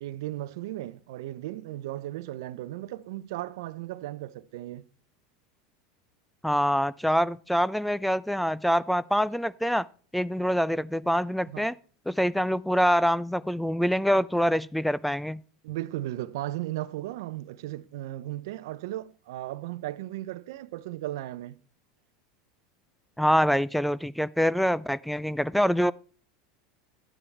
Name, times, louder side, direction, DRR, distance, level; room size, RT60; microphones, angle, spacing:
voice 1, 0.0-4.8 11.5-11.7 15.6-21.6, right 15 dB, 70° right, 0.6 m, -36 dB
voice 2, 6.4-9.9 10.1-11.7 12.1-15.4 23.2-25.9, equal, ahead, 0.4 m, -25 dB
12.0 x 9.7 x 3.3 m
hypercardioid pair, 90°, 2 cm